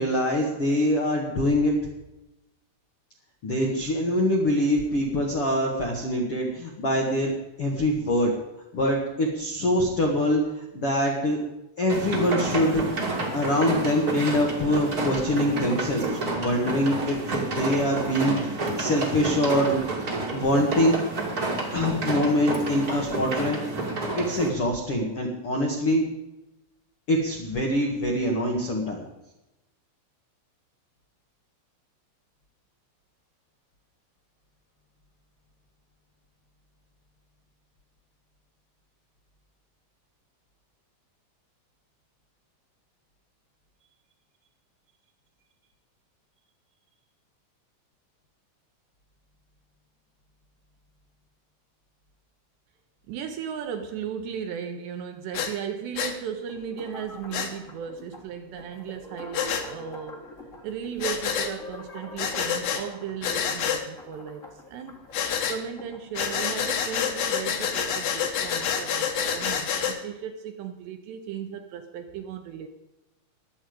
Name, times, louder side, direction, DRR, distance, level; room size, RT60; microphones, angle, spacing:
voice 1, 0.0-1.7 3.4-7.3 7.6-8.3 8.7-11.4 11.8-12.8 13.3-19.8 20.3-21.0 21.7-23.6 24.1-26.0 27.1-29.0, left 1 dB, 85° left, 0 dB, 1.2 m, -24 dB
sound 1, 11.9-24.5, right 2 dB, 45° right, 1.2 m, -29 dB
voice 2, 53.1-60.2 60.6-65.0 65.5-72.7, right 8 dB, 75° right, 6 dB, 2.7 m, -36 dB
Breathing, 55.3-55.5 56.0-56.1 57.3-57.5 59.3-59.6 61.0-61.5 62.2-62.8 63.2-63.8 65.1-65.6 66.2-70.0, left 8 dB, 65° left, 2.7 m, -27 dB
sound 2, 56.5-66.1, left 2 dB, 45° left, 1.0 m, -44 dB
21.5 x 8.0 x 5.2 m, 0.96 s
omnidirectional pair, 5.8 m